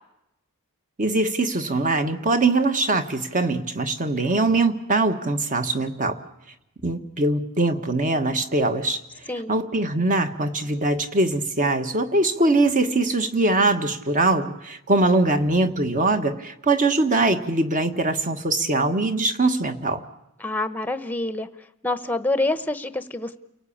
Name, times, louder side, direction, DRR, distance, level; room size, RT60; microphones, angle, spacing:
voice 1, 1.0-6.2 6.8-9.0 9.5-20.0, right 2 dB, 35° right, 8 dB, 1.5 m, -22 dB
voice 2, 20.4-21.5 21.8-23.4, left 2 dB, 10° left, 12 dB, 0.9 m, -26 dB
29.5 x 18.5 x 8.7 m, 0.90 s
head